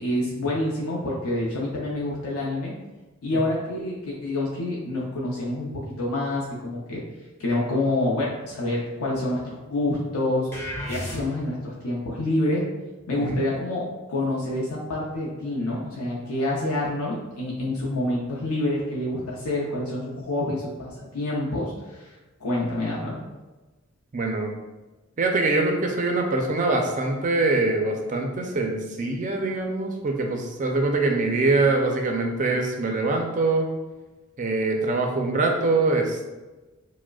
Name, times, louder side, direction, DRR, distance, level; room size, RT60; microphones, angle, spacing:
voice 1, 0.0-2.7 3.2-7.0 7.4-10.5 10.9-12.6 13.1-23.2, left 1 dB, 85° left, -4 dB, 0.6 m, -27 dB
sound 1, 10.5-11.7, left 1 dB, 10° left, 0.7 m, -33 dB
voice 2, 24.1-24.5 25.2-33.7 34.4-36.3, right 3 dB, 35° right, 2 dB, 0.4 m, -24 dB
4.7 x 2.0 x 2.3 m, 1.2 s
head